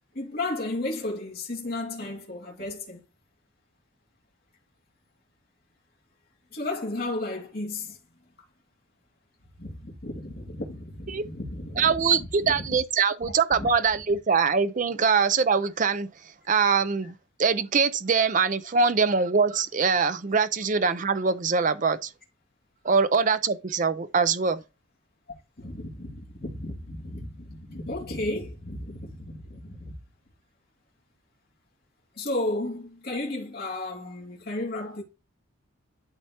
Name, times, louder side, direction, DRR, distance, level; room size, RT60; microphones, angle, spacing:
voice 1, 0.1-3.0 6.5-8.0 9.6-12.8 13.2-13.7 25.6-29.9 32.2-35.0, left 2 dB, 45° left, 2.5 m, -34 dB
voice 2, 11.8-16.1 16.5-17.1 17.4-22.1 22.8-24.6, right 5 dB, 35° right, 0.5 m, -23 dB
11.5 x 4.4 x 2.9 m
head